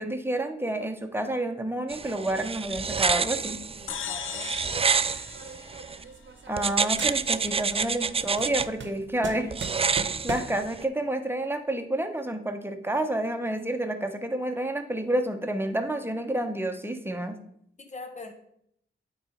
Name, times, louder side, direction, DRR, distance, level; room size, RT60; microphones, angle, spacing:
voice 1, 0.0-3.6 6.5-9.5 10.2-17.4, right 1 dB, 10° right, 6 dB, 1.1 m, -29 dB
sound 1, 1.9-6.0 6.6-8.7 9.5-10.8, right 5 dB, 30° right, 0.4 m, -28 dB
voice 2, 3.7-4.5 17.8-18.3, left 3 dB, 35° left, 5 dB, 1.2 m, -43 dB
sound 2, 3.9-6.5, left 8 dB, 80° left, 0.5 m, -38 dB
sound 3, 5.3-6.7 7.0-7.7 8.0-10.7, right 4 dB, 65° right, 0.9 m, -39 dB
9.0 x 4.0 x 4.5 m, 0.72 s
cardioid pair, 50°, 21 cm